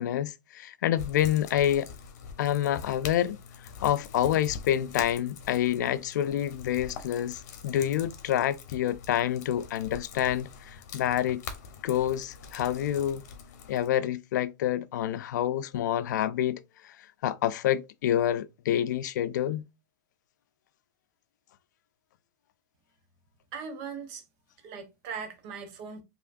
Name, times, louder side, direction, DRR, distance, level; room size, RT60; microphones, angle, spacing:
voice 1, 0.0-1.9 2.4-3.4 3.8-11.4 11.8-13.2 13.7-16.9 17.2-19.7, left 11 dB, 85° left, 0.4 m, -27 dB
sound 1, 1.0-13.9, left 6 dB, 65° left, 1.0 m, -44 dB
voice 2, 23.5-24.2 24.6-26.0, right 6 dB, 45° right, 1.0 m, -39 dB
4.7 x 3.0 x 2.5 m
supercardioid pair, 155°, 9 cm